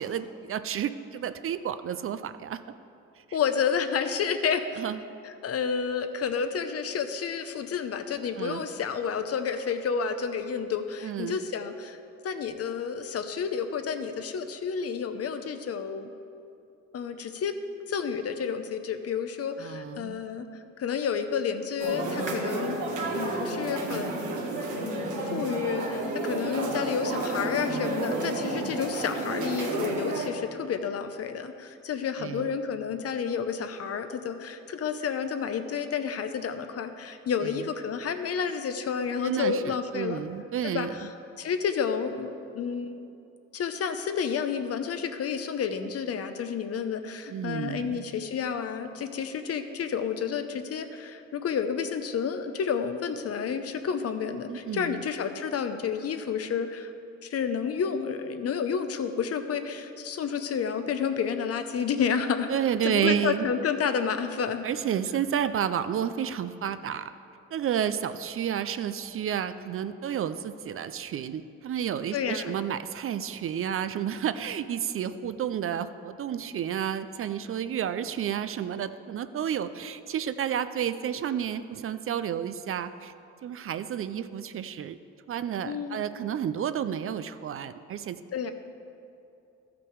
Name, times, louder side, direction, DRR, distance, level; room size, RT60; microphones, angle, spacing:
voice 1, 0.0-2.6 3.3-3.4 4.8-5.0 8.4-8.6 11.0-11.4 19.6-20.2 32.2-32.5 37.4-37.6 39.2-40.9 47.3-48.0 54.5-55.0 62.5-63.4 64.6-67.1 67.5-83.1 83.4-85.0 85.3-88.2, right 9 dB, 45° right, 12 dB, 0.4 m, -31 dB
voice 2, 3.3-4.8 5.2-12.0 12.2-16.1 16.9-17.5 17.9-20.5 20.8-22.8 23.2-24.3 24.8-40.2 40.6-41.1 41.4-43.0 43.5-56.9 57.2-62.5 62.8-64.7 72.1-72.5 85.7-86.1 88.3-88.5, left 6 dB, 50° left, 8 dB, 0.7 m, -30 dB
sound 1, 21.8-30.3, right 2 dB, 75° right, 1.7 m, -31 dB
13.0 x 6.0 x 4.7 m, 2.7 s
cardioid pair, 90°, 30 cm